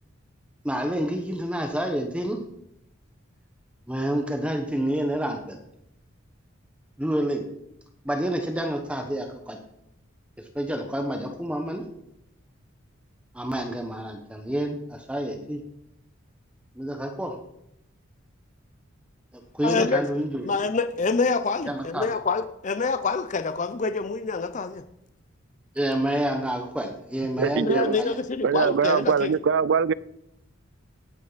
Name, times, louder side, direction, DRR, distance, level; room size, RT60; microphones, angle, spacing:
voice 1, 0.6-2.4 3.9-5.6 7.0-7.4 8.0-9.6 10.5-11.8 13.3-15.6 16.8-17.4 19.5-20.5 21.7-22.1 25.7-28.2, right 1 dB, 5° right, 1.1 m, -28 dB
voice 2, 19.6-20.0 20.4-24.8 27.5-29.3, left 4 dB, 35° left, 0.6 m, -26 dB
voice 3, 27.4-28.0 28.4-29.9, right 6 dB, 60° right, 0.4 m, -22 dB
19.0 x 8.6 x 4.1 m
head